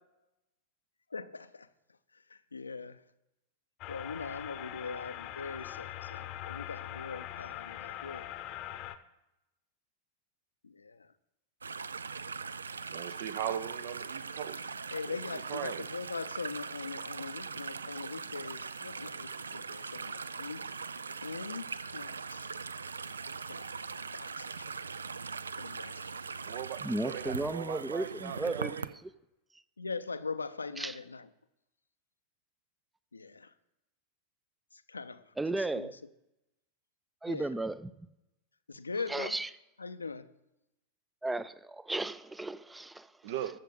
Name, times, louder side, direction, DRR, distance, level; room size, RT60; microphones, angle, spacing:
voice 1, 1.1-1.7 2.1-3.0 3.9-8.3 10.6-11.1 14.9-20.8 21.2-22.6 23.5-23.7 24.1-24.7 25.6-26.2 29.8-31.3 33.1-33.5 34.7-36.0 37.3-37.5 38.7-39.4 39.8-40.3, left 4 dB, 80° left, 0.6 m, -41 dB
sound 1, 3.8-8.9, left 13 dB, 40° left, 0.8 m, -42 dB
sound 2, 11.6-28.9, right 5 dB, 75° right, 0.4 m, -41 dB
voice 2, 12.9-14.6 15.1-15.9 26.5-29.0 43.2-43.6, right 10 dB, 50° right, 0.8 m, -39 dB
voice 3, 26.8-28.9 30.8-31.0 35.4-35.9 37.2-37.9 39.1-39.5 41.2-43.1, right 2 dB, 5° right, 0.5 m, -34 dB
21.0 x 7.3 x 4.0 m
figure-of-eight pair, 90°, 0 cm